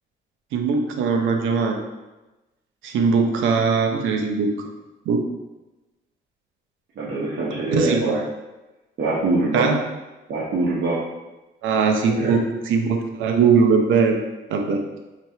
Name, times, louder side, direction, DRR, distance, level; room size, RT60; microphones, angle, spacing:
voice 1, 0.5-1.8 2.8-4.7 5.1-5.2 7.7-8.2 9.5-9.8 11.6-14.2 14.5-14.8, right 5 dB, 80° right, 4 dB, 0.6 m, -20 dB
voice 2, 7.0-8.2 9.0-9.7 10.3-11.0 12.2-12.4, right 3 dB, 60° right, -6 dB, 1.0 m, -23 dB
5.4 x 3.0 x 2.7 m, 1.1 s
cardioid pair, 90°, 20 cm